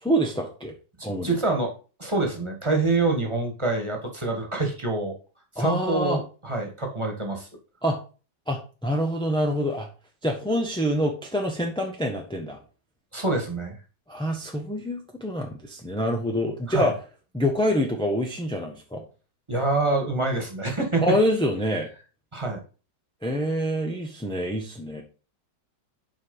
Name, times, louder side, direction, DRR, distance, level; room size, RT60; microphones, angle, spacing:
voice 1, 0.0-0.7 1.0-1.3 5.6-6.2 7.8-8.0 8.5-9.9 10.2-12.6 14.1-16.9 17.3-19.0 21.0-21.9 23.2-25.0, equal, 5° left, 1 dB, 0.6 m, -26 dB
voice 2, 1.0-1.7 2.0-5.1 5.6-7.5 13.1-13.8 16.7-16.9 19.5-21.1 22.3-22.6, right 3 dB, 15° right, 1 dB, 1.7 m, -26 dB
6.2 x 5.0 x 5.5 m, 0.35 s
omnidirectional pair, 2.0 m